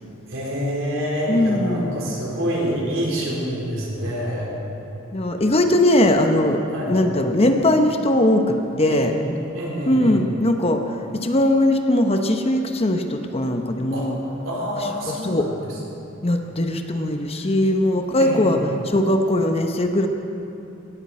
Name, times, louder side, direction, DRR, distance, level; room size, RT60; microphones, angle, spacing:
voice 1, 0.3-4.5 6.6-7.0 8.9-9.1 9.5-10.2 13.9-14.2 14.4-15.5 17.4-17.5 18.2-18.6, equal, 70° right, -4 dB, 4.1 m, -27 dB
voice 2, 1.3-2.0 5.1-6.6 6.9-9.1 9.9-10.8 11.1-14.2 15.1-15.5 16.2-18.6 18.8-20.1, left 1 dB, 30° left, 5 dB, 0.9 m, -20 dB
18.5 x 14.0 x 4.3 m, 2.9 s
head